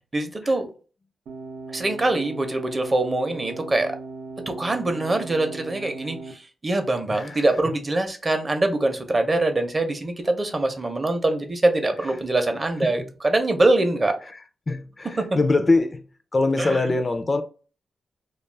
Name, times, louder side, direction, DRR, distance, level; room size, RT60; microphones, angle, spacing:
voice 1, 0.1-0.7 1.7-3.9 4.5-14.2 15.2-15.3 16.6-16.8, right 2 dB, 30° right, 0.6 m, -23 dB
sound 1, 1.3-6.3, right 3 dB, 90° right, 0.5 m, -38 dB
voice 2, 7.1-7.4 12.8-12.9 14.7-16.1 16.3-17.4, left 3 dB, 35° left, 0.3 m, -23 dB
2.3 x 2.3 x 3.2 m
cardioid pair, 80°, 0 cm